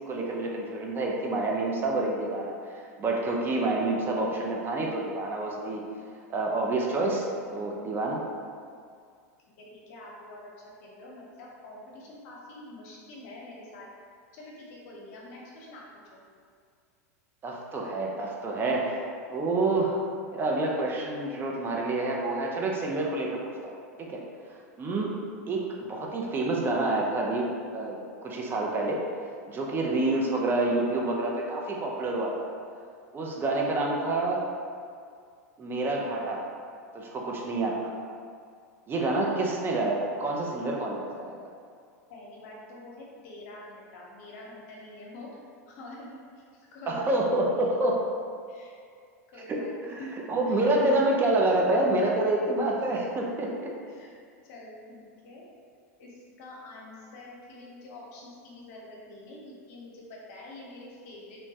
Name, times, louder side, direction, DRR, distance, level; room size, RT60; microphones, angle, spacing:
voice 1, 0.1-5.8 6.3-8.2 17.4-19.0 19.3-20.0 20.3-24.2 24.8-25.2 25.5-29.0 29.5-32.5 33.1-34.5 35.6-36.5 36.9-37.9 38.9-41.5 46.9-48.1 49.5-50.0 50.3-53.7, right 2 dB, 25° right, -1 dB, 0.5 m, -28 dB
voice 2, 9.6-10.5 10.8-13.9 14.3-15.8 16.1-16.2 42.1-45.3 45.7-47.2 48.5-48.7 49.3-50.2 50.5-50.7 53.6-54.1 54.5-55.4 56.0-61.4, left 1 dB, 65° left, -4 dB, 0.8 m, -46 dB
3.0 x 2.2 x 2.7 m, 2.2 s
hypercardioid pair, 105°, 8 cm